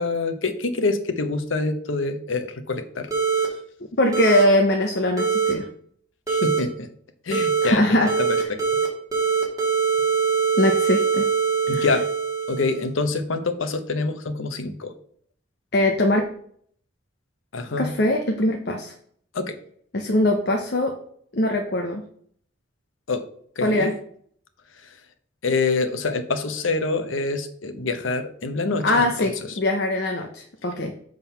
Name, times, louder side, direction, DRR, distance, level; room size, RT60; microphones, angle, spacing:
voice 1, 0.0-3.1 6.3-6.9 7.2-8.6 11.7-12.1 12.5-14.9 17.5-17.9 19.3-19.6 23.1-23.2 23.6-23.9 25.4-29.3, left 3 dB, 90° left, 8 dB, 0.9 m, -26 dB
sound 1, 3.1-3.5 4.1-4.4 5.2-5.5 6.3-6.6 7.3-7.7 8.1-8.9 9.1-12.8, right 6 dB, 15° right, 1.7 m, -22 dB
voice 2, 4.0-5.7 7.6-8.1 10.6-11.3 11.7-11.9 15.7-16.2 17.7-18.9 19.9-21.0 21.3-22.0 23.6-23.9 28.8-30.9, left 1 dB, 55° left, 3 dB, 0.8 m, -21 dB
7.3 x 3.9 x 5.6 m, 0.62 s
head